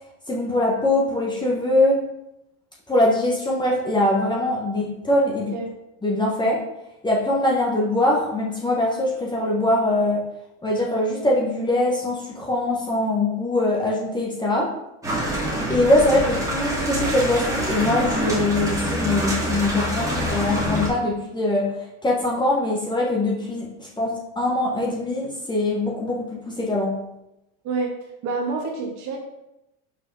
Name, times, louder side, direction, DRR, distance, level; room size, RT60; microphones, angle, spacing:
voice 1, 0.3-2.0 2.9-5.5 6.0-6.6 7.0-10.2 10.6-14.7 15.7-21.7 22.0-26.9, left 1 dB, 10° left, -3 dB, 1.2 m, -22 dB
sound 1, 15.0-20.9, right 1 dB, 10° right, 2.2 m, -25 dB
voice 2, 28.2-29.2, right 4 dB, 45° right, 0 dB, 2.1 m, -27 dB
5.6 x 4.8 x 5.5 m, 0.89 s
supercardioid pair, 135°, 38 cm